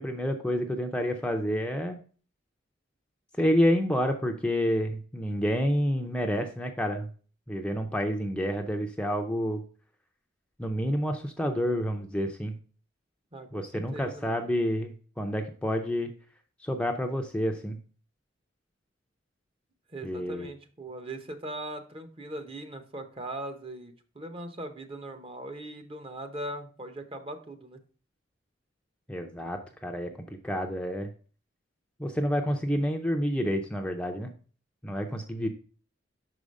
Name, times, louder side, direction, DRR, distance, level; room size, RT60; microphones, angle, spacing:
voice 1, 0.0-2.0 3.4-7.1 7.5-9.6 10.6-12.6 13.5-16.1 16.6-17.8 20.0-20.5 29.1-30.1 30.4-31.1 32.0-34.3 34.8-35.5, equal, 5° left, 3 dB, 0.5 m, -29 dB
voice 2, 13.3-14.4 19.9-27.8, right 1 dB, 30° right, 7 dB, 0.8 m, -40 dB
6.0 x 4.9 x 5.2 m, 0.40 s
head